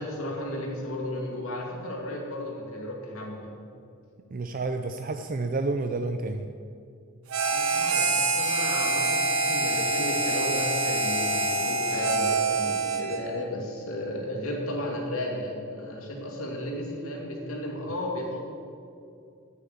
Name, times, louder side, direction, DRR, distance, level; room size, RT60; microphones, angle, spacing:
voice 1, 0.0-3.6 7.5-18.4, left 1 dB, 80° left, -1 dB, 2.7 m, -34 dB
voice 2, 4.3-6.5, right 3 dB, 40° right, 7 dB, 0.5 m, -30 dB
Harmonica, 7.3-13.3, right 2 dB, 80° right, 1.2 m, -26 dB
9.8 x 8.7 x 8.0 m, 2.4 s
head